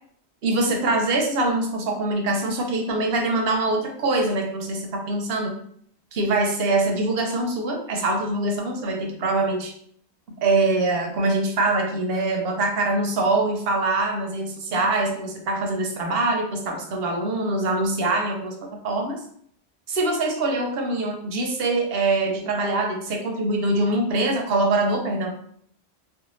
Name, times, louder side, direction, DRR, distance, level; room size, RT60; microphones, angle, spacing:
voice 1, 0.4-5.6 6.1-9.7 10.4-18.5 18.8-19.2 19.9-25.3, right 2 dB, 70° right, 2 dB, 0.8 m, -23 dB
2.5 x 2.2 x 3.0 m, 0.64 s
omnidirectional pair, 1.1 m